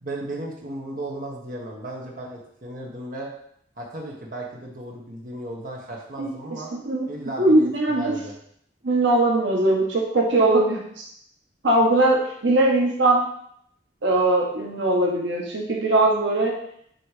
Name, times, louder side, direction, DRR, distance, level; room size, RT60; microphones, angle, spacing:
voice 1, 0.0-3.3 3.8-6.7 7.1-8.3, right 1 dB, 45° right, -2 dB, 1.3 m, -35 dB
voice 2, 6.7-7.1 7.4-8.2 8.8-11.1 11.6-13.3 14.0-16.5, right 2 dB, 80° right, -1 dB, 1.2 m, -20 dB
7.7 x 3.2 x 4.9 m, 0.69 s
head